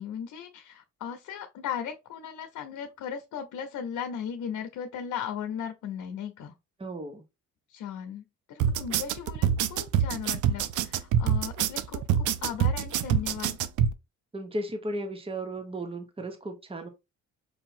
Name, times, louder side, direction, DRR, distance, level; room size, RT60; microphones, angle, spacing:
voice 1, 0.0-6.5 7.7-13.6, left 8 dB, 80° left, 0.9 m, -37 dB
voice 2, 6.8-7.2 14.3-16.9, right 1 dB, 20° right, 1.2 m, -35 dB
sound 1, 8.6-13.9, right 9 dB, 85° right, 0.6 m, -25 dB
5.8 x 2.8 x 2.7 m
cardioid pair, 90°, 30 cm